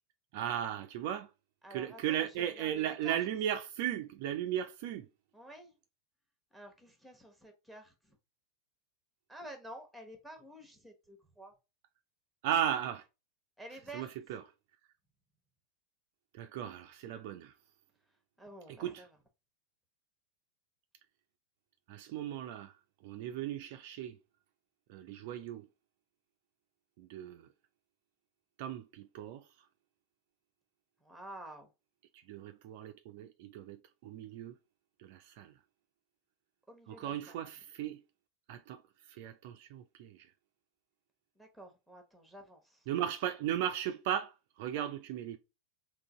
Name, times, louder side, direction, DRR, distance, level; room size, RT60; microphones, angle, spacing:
voice 1, 0.3-1.3 1.7-5.1 12.4-13.0 13.9-14.4 16.3-17.5 18.8-19.0 21.9-22.7 23.0-24.2 24.9-25.7 27.0-27.5 28.6-29.5 32.1-34.6 35.0-35.5 36.9-38.0 38.5-38.8 39.1-40.3 42.9-45.4, right 10 dB, 50° right, 0.4 m, -36 dB
voice 2, 1.6-3.2 5.3-5.7 6.5-8.2 9.3-11.5 13.6-14.1 18.4-19.2 31.0-31.7 36.7-37.4 41.4-42.9, right 1 dB, ahead, 1.0 m, -50 dB
3.8 x 2.5 x 3.6 m
figure-of-eight pair, 90°, 0 cm